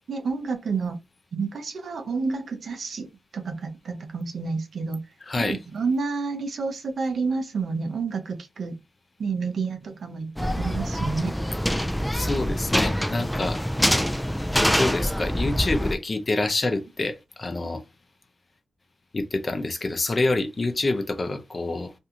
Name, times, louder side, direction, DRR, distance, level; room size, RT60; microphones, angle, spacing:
voice 1, 0.1-1.0 1.3-5.0 5.4-8.8 9.2-11.3, right 4 dB, 70° right, 0.7 m, -29 dB
voice 2, 5.2-5.6 12.1-13.6 14.7-17.8 19.1-21.9, left 2 dB, 40° left, 0.6 m, -27 dB
sound 1, 10.4-15.9, equal, 5° left, 0.3 m, -25 dB
2.6 x 2.3 x 2.8 m
cardioid pair, 50°, 0 cm